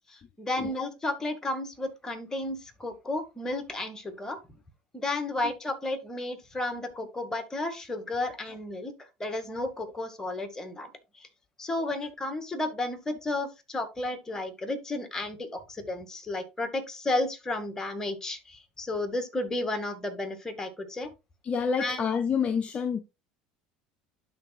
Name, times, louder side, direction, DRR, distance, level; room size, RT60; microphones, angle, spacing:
voice 1, 0.1-4.4 4.9-10.9 11.1-11.3 11.6-21.1 21.8-22.1, left 2 dB, 15° left, 2.0 m, -33 dB
voice 2, 21.4-23.0, left 6 dB, 35° left, 0.7 m, -28 dB
12.0 x 4.1 x 2.4 m
hypercardioid pair, 80°, 3 cm